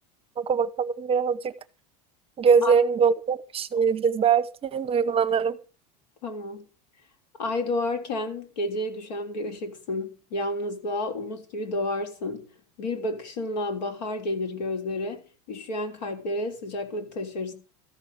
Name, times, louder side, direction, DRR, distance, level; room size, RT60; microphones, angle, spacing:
voice 1, 0.4-1.5 2.4-5.6, right 6 dB, 25° right, 0.8 m, -22 dB
voice 2, 6.2-6.7 7.4-12.5 12.8-17.5, left 2 dB, 85° left, 3.5 m, -31 dB
14.0 x 6.5 x 7.9 m
supercardioid pair, 120°, 21 cm